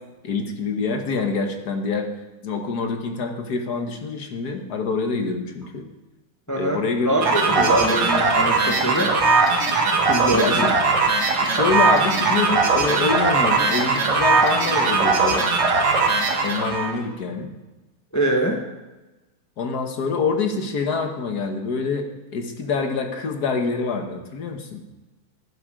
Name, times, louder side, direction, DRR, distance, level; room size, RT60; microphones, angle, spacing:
voice 1, 0.2-2.1 2.4-5.9 6.5-7.1 7.5-7.9 10.3-10.7 11.4-15.5 16.4-17.5 19.6-24.8, left 4 dB, 55° left, 5 dB, 1.5 m, -26 dB
voice 2, 6.5-9.2 10.0-10.7 18.1-18.6, right 1 dB, 15° left, 2 dB, 0.6 m, -23 dB
sound 1, 7.2-16.9, right 4 dB, 70° right, 2.5 m, -19 dB
11.0 x 10.0 x 5.0 m, 1.1 s
omnidirectional pair, 2.4 m